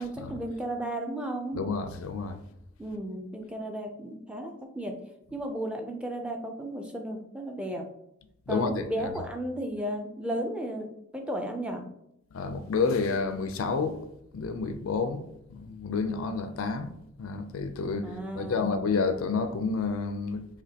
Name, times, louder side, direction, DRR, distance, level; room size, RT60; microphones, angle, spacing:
voice 1, 0.0-1.6 2.8-4.9 5.3-7.9 8.5-11.8 18.0-18.7, right 1 dB, 5° right, 0.4 m, -34 dB
voice 2, 1.5-2.4 8.5-9.1 12.3-14.0 14.3-16.9 17.2-20.5, left 4 dB, 80° left, 0.4 m, -30 dB
5.0 x 3.6 x 2.8 m
head